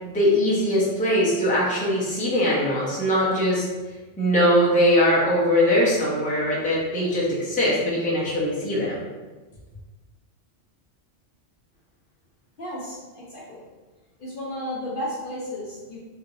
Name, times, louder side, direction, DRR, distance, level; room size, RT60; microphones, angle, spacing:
voice 1, 0.0-3.6 4.2-9.0, equal, 10° left, -6 dB, 0.6 m, -21 dB
voice 2, 12.6-13.7 14.2-16.0, left 1 dB, 55° left, -5 dB, 0.7 m, -33 dB
3.2 x 2.8 x 2.6 m, 1.3 s
omnidirectional pair, 1.2 m